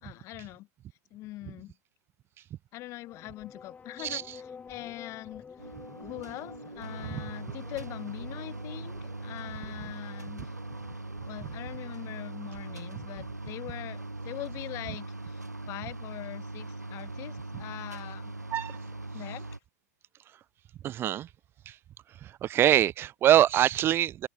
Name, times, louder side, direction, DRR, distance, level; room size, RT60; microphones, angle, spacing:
voice 1, 0.0-0.7 1.1-1.7 2.7-5.5 6.0-10.5 11.3-15.4 15.7-18.3 19.1-19.5, left 17 dB, 35° left, 2.1 m, -42 dB
sound 1, 2.9-14.8, left 6 dB, 15° left, 7.1 m, -52 dB
sound 2, 5.6-19.6, right 2 dB, 85° right, 1.9 m, -40 dB
voice 2, 20.8-21.3 21.7-21.8 22.2-24.3, right 12 dB, 25° right, 1.0 m, -24 dB
figure-of-eight pair, 95°, 9 cm